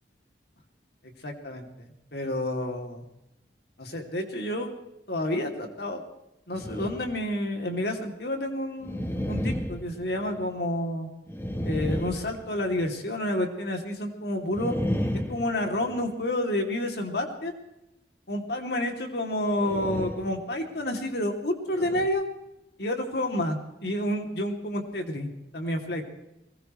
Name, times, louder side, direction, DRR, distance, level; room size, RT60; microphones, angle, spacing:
voice 1, 1.2-3.0 3.8-4.7 5.1-6.0 6.5-11.1 11.6-14.8 15.3-17.5 18.3-22.2 22.8-26.1, left 1 dB, 70° left, 3 dB, 2.8 m, -30 dB
sound 1, 6.5-7.3 7.7-7.8 8.8-10.6 11.3-13.0 14.5-16.2 19.5-20.4 20.8-21.0 21.7-22.1, equal, 15° left, 1.1 m, -33 dB
22.0 x 20.5 x 3.1 m, 0.90 s
head